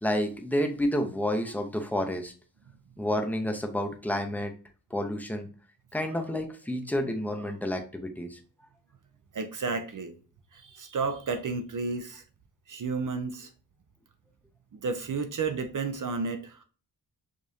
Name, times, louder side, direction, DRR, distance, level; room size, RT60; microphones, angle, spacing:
voice 1, 0.0-2.3 3.0-4.5 4.9-5.5 5.9-8.4, left 1 dB, 5° left, 0.7 m, -30 dB
voice 2, 9.3-10.2 10.5-12.2 12.7-13.5 14.7-16.6, right 4 dB, 50° right, 0.6 m, -32 dB
5.1 x 2.5 x 2.7 m
wide cardioid pair, 85°, 42 cm